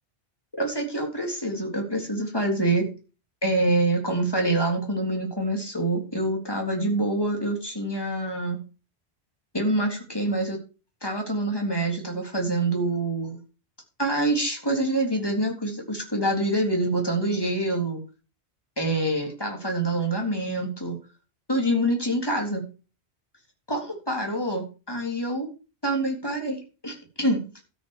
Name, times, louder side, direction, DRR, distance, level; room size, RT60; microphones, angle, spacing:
voice 1, 0.6-2.9 3.4-8.6 9.5-10.6 11.0-13.4 14.0-18.0 18.8-21.0 21.5-22.7 23.7-25.5 25.8-27.6, right 1 dB, 20° left, 1 dB, 3.6 m, -26 dB
13.0 x 6.5 x 6.6 m, 0.34 s
omnidirectional pair, 1.1 m